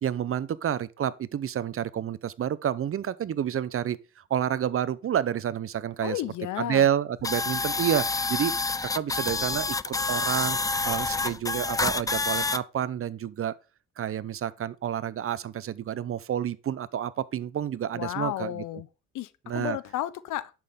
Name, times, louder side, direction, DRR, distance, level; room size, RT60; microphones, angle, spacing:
voice 1, 0.0-6.2 6.6-8.5 8.8-10.6 10.8-13.5 14.0-18.6 19.5-19.8, right 9 dB, 45° right, 0.7 m, -29 dB
voice 2, 6.0-6.9 17.9-18.9 19.1-20.5, left 13 dB, 80° left, 0.8 m, -32 dB
sound 1, 7.2-12.6, left 3 dB, 10° left, 0.3 m, -28 dB
11.0 x 6.0 x 3.7 m
cardioid pair, 90°, 30 cm